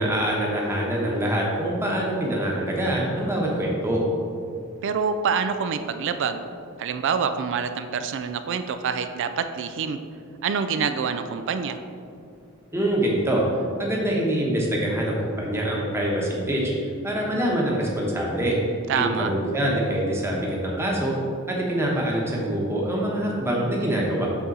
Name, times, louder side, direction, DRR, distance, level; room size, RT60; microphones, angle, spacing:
voice 1, 0.0-4.0 12.7-13.4 13.8-16.7 17.0-18.6 18.9-21.2 21.5-24.3, right 1 dB, 10° right, -3 dB, 1.1 m, -25 dB
voice 2, 4.8-6.4 6.8-10.0 10.4-11.8 18.9-19.3, right 6 dB, 60° right, 9 dB, 0.3 m, -26 dB
8.2 x 3.8 x 4.2 m, 2.4 s
head